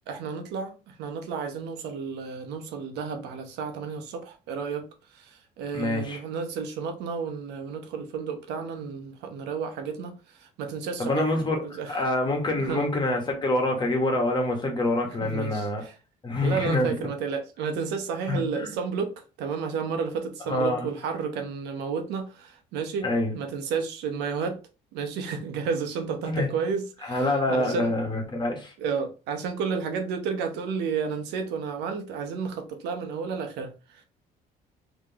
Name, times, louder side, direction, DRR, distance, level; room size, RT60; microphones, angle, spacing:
voice 1, 0.1-11.3 11.6-12.0 12.6-12.9 15.2-15.9 16.4-24.6 24.9-28.0 28.8-34.0, right 5 dB, 90° right, 0.8 m, -32 dB
voice 2, 5.7-6.2 11.0-11.6 11.9-15.8 16.2-16.9 18.3-18.8 20.5-20.9 23.0-23.3 26.2-26.5 27.0-28.7, left 2 dB, 25° left, 1.3 m, -26 dB
3.6 x 3.0 x 2.9 m
cardioid pair, 110°, 17 cm